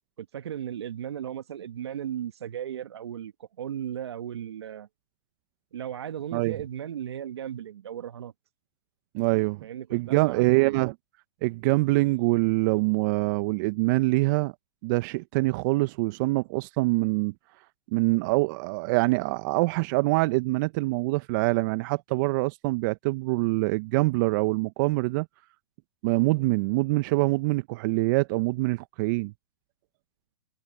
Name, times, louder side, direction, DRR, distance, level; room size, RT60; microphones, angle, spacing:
voice 1, 0.2-4.9 5.7-8.3 9.6-10.8, right 10 dB, 70° right, 1.7 m, -36 dB
voice 2, 9.1-9.6 9.9-10.9 11.4-14.5 14.8-17.3 17.9-25.3 26.0-29.3, right 23 dB, 45° right, 1.1 m, -24 dB
hypercardioid pair, 115°, 14 cm